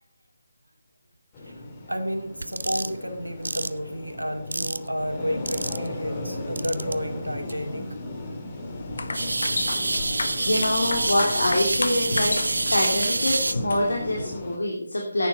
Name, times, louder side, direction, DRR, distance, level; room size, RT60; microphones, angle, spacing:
sound 1, 1.3-14.6, left 1 dB, 20° left, 2.5 m, -36 dB
voice 1, 1.4-7.9, equal, 90° right, 4 dB, 2.5 m, -31 dB
sound 2, 2.4-2.9 3.4-3.7 4.5-4.9 5.5-5.9 6.6-6.9 7.5-7.6 9.1-13.5, right 2 dB, 65° right, 0.6 m, -27 dB
sound 3, 8.7-14.1, left 4 dB, 55° left, 1.0 m, -34 dB
voice 2, 10.4-12.4 12.7-15.3, left 1 dB, 70° left, -1 dB, 2.9 m, -25 dB
11.0 x 9.3 x 5.5 m, 0.65 s
figure-of-eight pair, 155°, 0 cm